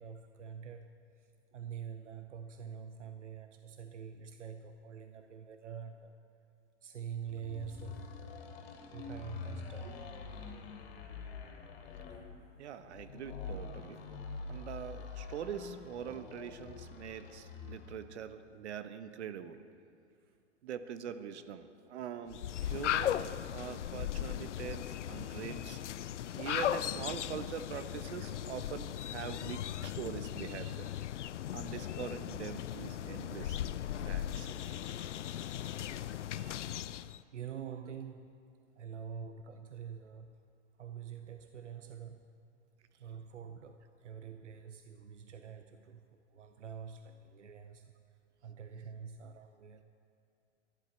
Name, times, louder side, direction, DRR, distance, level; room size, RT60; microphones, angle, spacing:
voice 1, 0.0-6.1 6.8-8.2 8.9-10.0 20.1-20.4 35.5-35.8 36.8-37.0 37.3-38.5 38.8-40.4 40.8-42.3 42.9-49.8, right 7 dB, 90° right, 7 dB, 0.8 m, -46 dB
sound 1, 7.3-18.1, left 4 dB, 55° left, 3.0 m, -46 dB
voice 2, 12.6-14.0 14.5-19.6 20.6-23.2 23.5-25.8 26.4-30.9 31.5-35.0 36.3-36.6, right 8 dB, 70° right, 11 dB, 1.1 m, -43 dB
sound 2, 22.3-37.2, left 11 dB, 85° left, 0.6 m, -37 dB
24.0 x 11.5 x 4.4 m, 2.4 s
hypercardioid pair, 115°, 35 cm